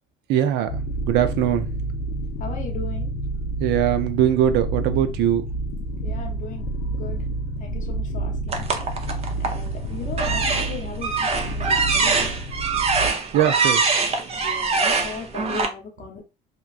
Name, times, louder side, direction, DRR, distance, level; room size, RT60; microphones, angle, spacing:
voice 1, 0.3-0.8 1.1-1.7 3.6-5.4 13.3-13.8, right 11 dB, 85° right, 0.4 m, -21 dB
sound 1, 0.7-13.1, right 2 dB, 75° left, 0.4 m, -29 dB
voice 2, 2.4-3.1 6.0-7.2 7.6-8.7 9.4-12.4 14.4-16.2, left 5 dB, 50° left, 0.9 m, -37 dB
sound 2, 8.5-9.6 10.1-15.7, right 4 dB, 35° right, 0.6 m, -23 dB
2.9 x 2.2 x 2.4 m
cardioid pair, 110°, 17 cm